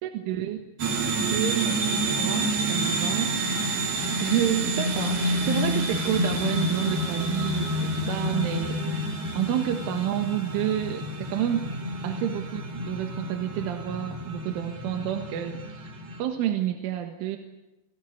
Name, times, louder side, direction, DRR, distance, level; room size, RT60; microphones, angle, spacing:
voice 1, 0.0-0.6 1.2-3.3 4.0-11.8 12.0-17.4, right 11 dB, 80° right, 5 dB, 4.0 m, -30 dB
sound 1, 0.8-16.2, right 1 dB, 55° right, 5.1 m, -28 dB
29.5 x 17.5 x 9.5 m, 0.99 s
omnidirectional pair, 5.5 m